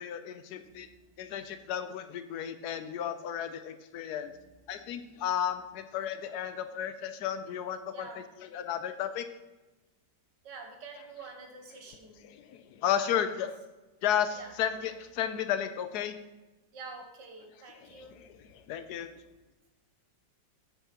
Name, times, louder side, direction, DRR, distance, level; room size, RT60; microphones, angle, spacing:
voice 1, 0.0-0.9 1.2-4.3 4.7-8.1 8.5-9.3 12.3-13.5 14.0-16.1 18.0-18.1 18.7-19.1, left 9 dB, 70° left, 10 dB, 1.1 m, -33 dB
voice 2, 0.6-1.7 4.2-5.2 7.9-8.3 10.4-12.3 12.9-13.4 14.4-14.5 16.7-18.9, right 4 dB, 70° right, 3 dB, 1.7 m, -49 dB
8.6 x 4.6 x 5.8 m, 1.1 s
omnidirectional pair, 2.0 m